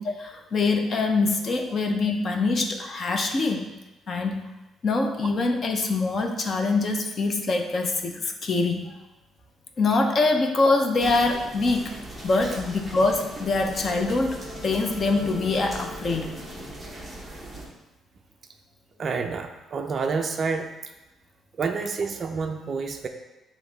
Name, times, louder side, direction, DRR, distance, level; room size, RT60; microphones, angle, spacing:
voice 1, 0.0-3.7 4.1-4.5 4.8-9.0 9.8-11.9 12.2-14.4 14.6-16.4, left 3 dB, 30° left, 4 dB, 0.5 m, -24 dB
sound 1, 11.0-17.7, right 1 dB, ahead, 0.9 m, -39 dB
Wind instrument woodwind instrument, 13.3-17.8, left 4 dB, 85° left, 1.2 m, -45 dB
voice 2, 19.0-20.7 21.6-23.1, right 4 dB, 30° right, 5 dB, 0.4 m, -28 dB
8.0 x 3.0 x 3.9 m, 1.0 s
cardioid pair, 180°, 0 cm